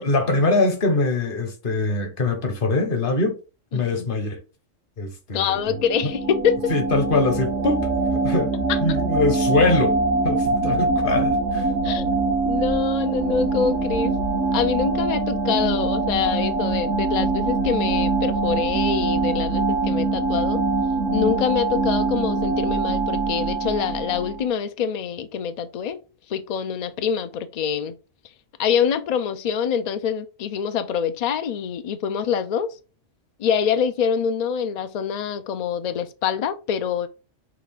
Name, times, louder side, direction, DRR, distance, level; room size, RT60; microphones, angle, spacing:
voice 1, 0.0-3.4 3.7-4.4 5.0-5.6 6.0-6.1 6.7-8.6 8.8-10.0 10.2-11.7, left 2 dB, 50° left, 1.0 m, -23 dB
voice 2, 3.7-4.1 5.3-6.7 8.7-8.8 11.8-14.1 14.5-20.7 21.1-26.0 26.3-27.9 28.6-32.7 33.4-37.1, left 7 dB, 75° left, 0.3 m, -25 dB
sound 1, 5.6-24.5, right 3 dB, 80° right, 1.2 m, -23 dB
6.0 x 2.4 x 3.4 m
omnidirectional pair, 1.3 m